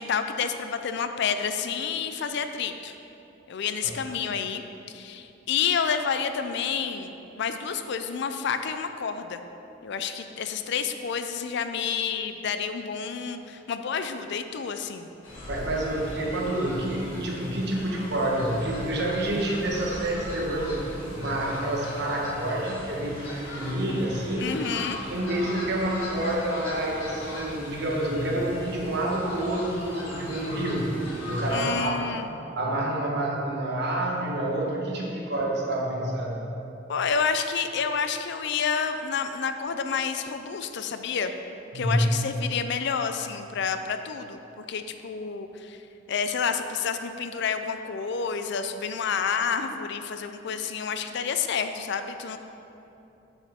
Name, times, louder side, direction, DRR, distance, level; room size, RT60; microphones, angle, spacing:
voice 1, 0.0-2.9 3.5-4.6 4.9-9.4 9.8-15.1 24.4-25.0 31.5-32.3 36.9-41.3 41.7-45.8 46.1-52.4, left 6 dB, 65° left, 8 dB, 0.4 m, -29 dB
Fowl, 15.2-31.7, left 1 dB, 80° left, 1.9 m, -39 dB
voice 2, 15.5-24.5 25.1-30.9 31.3-32.1 32.6-36.4 41.7-42.0, right 1 dB, 60° right, -2 dB, 1.3 m, -28 dB
8.2 x 7.2 x 3.5 m, 2.9 s
head